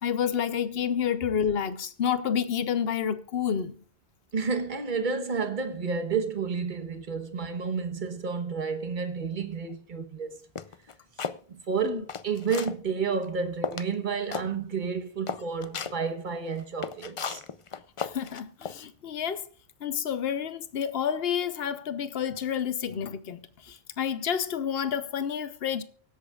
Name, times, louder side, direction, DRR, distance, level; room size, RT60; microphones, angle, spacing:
voice 1, 0.0-3.7 11.8-12.0 18.0-19.5 19.8-23.4 23.7-25.8, left 8 dB, 70° left, 1.0 m, -29 dB
voice 2, 4.3-10.4 11.5-17.4, right 5 dB, 50° right, 1.3 m, -31 dB
sound 1, 10.6-11.4 11.9-12.8 13.2-13.3 13.6-14.0 14.3-14.5 14.8-14.9 15.3-16.0 16.6-18.8, left 6 dB, 45° left, 0.4 m, -35 dB
24.5 x 8.3 x 2.4 m
omnidirectional pair, 1.1 m